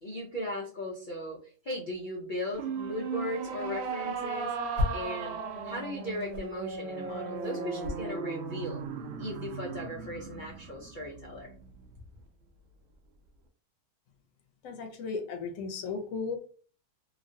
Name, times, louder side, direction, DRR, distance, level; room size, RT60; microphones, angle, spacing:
voice 1, 0.0-5.4 5.6-8.8 9.2-11.5, left 1 dB, 90° left, -2 dB, 0.4 m, -37 dB
sound 1, 2.5-11.9, right 5 dB, 75° right, 0.6 m, -37 dB
sound 2, 4.7-5.2 5.5-9.2, left 2 dB, 60° right, 1.0 m, -36 dB
voice 2, 14.6-16.4, left 4 dB, 65° left, 4 dB, 0.9 m, -35 dB
3.0 x 2.4 x 2.6 m, 0.40 s
omnidirectional pair, 1.6 m